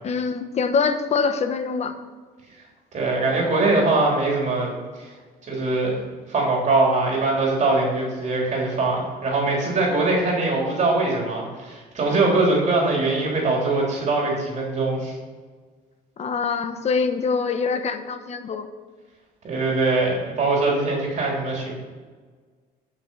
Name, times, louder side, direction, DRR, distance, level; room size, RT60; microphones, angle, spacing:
voice 1, 0.0-2.0 16.2-18.7, left 5 dB, 40° left, 8 dB, 1.0 m, -24 dB
voice 2, 2.9-5.1 5.4-15.2 19.4-21.7, right 2 dB, 45° right, -2 dB, 3.5 m, -22 dB
10.5 x 6.2 x 5.4 m, 1.5 s
cardioid pair, 110°, 17 cm